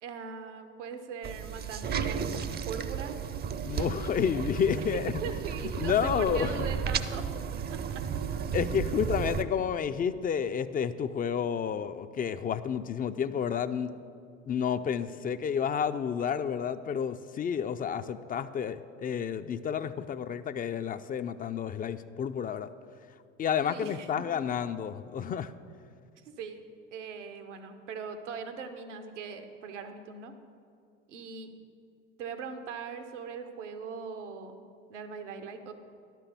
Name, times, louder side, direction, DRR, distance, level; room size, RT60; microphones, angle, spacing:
voice 1, 0.0-2.3 2.7-3.2 4.8-7.3 7.7-8.0 9.2-9.4 23.7-24.3 26.2-26.6 26.9-30.3 31.1-31.5 32.2-34.6 34.9-35.7, right 6 dB, 80° right, 7 dB, 1.0 m, -40 dB
sound 1, 1.2-9.4, right 7 dB, 30° right, 0.5 m, -33 dB
voice 2, 3.6-5.1 5.8-6.7 8.5-13.9 14.5-22.7 23.4-25.5, left 7 dB, 25° left, 12 dB, 0.4 m, -30 dB
11.5 x 6.0 x 6.8 m, 2.4 s
hypercardioid pair, 70°, 35 cm